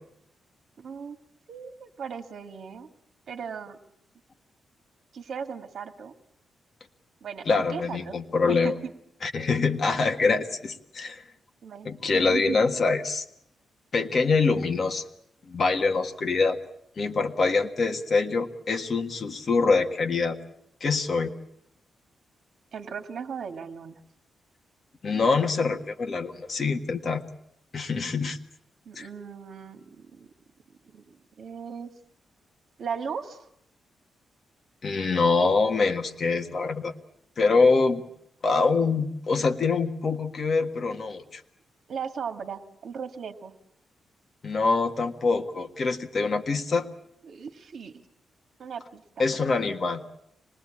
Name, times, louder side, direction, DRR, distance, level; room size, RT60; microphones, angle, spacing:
voice 1, 0.8-1.2 1.5-2.9 3.3-3.8 5.1-6.1 7.2-8.2 8.5-8.9 11.6-11.9 12.1-12.6 22.7-24.0 28.9-30.3 30.8-31.9 32.8-33.5 41.9-43.5 47.2-48.0 48.6-49.2, right 6 dB, 60° right, 7 dB, 1.9 m, -37 dB
voice 2, 7.4-8.7 9.2-11.2 11.8-13.2 13.9-15.0 15.5-16.6 17.0-20.4 20.8-21.3 25.0-27.2 27.7-28.4 28.9-29.1 34.8-36.9 37.4-38.0 38.4-41.4 44.4-46.9 49.2-50.0, left 4 dB, 40° left, 5 dB, 1.6 m, -24 dB
26.0 x 20.0 x 8.7 m, 0.75 s
wide cardioid pair, 145°, 0 cm